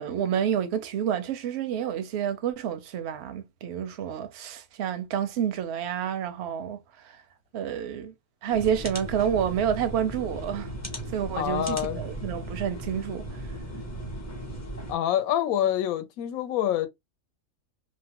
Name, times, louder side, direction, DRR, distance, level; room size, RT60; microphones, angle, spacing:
voice 1, 0.0-6.8 7.0-7.2 7.5-8.1 8.4-10.7 11.1-13.4, right 9 dB, 65° right, 0.7 m, -29 dB
sound 1, 8.5-14.9, right 1 dB, 20° left, 0.4 m, -37 dB
voice 2, 11.4-12.0 14.9-16.9, left 11 dB, 75° left, 1.0 m, -26 dB
2.8 x 2.1 x 2.8 m
omnidirectional pair, 1.5 m